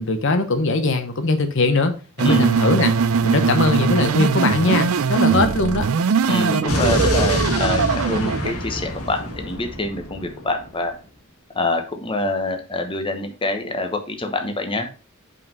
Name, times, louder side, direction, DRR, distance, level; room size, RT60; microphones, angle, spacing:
voice 1, 0.0-1.9 2.2-2.9 3.2-5.9, left 2 dB, 60° left, 0.9 m, -20 dB
sound 1, 2.2-8.5, right 5 dB, 75° right, 0.5 m, -20 dB
voice 2, 6.3-10.9 11.5-15.0, left 2 dB, 25° left, 0.9 m, -25 dB
Explosion, 6.7-10.7, left 1 dB, 90° left, 1.6 m, -26 dB
5.5 x 5.4 x 5.3 m
head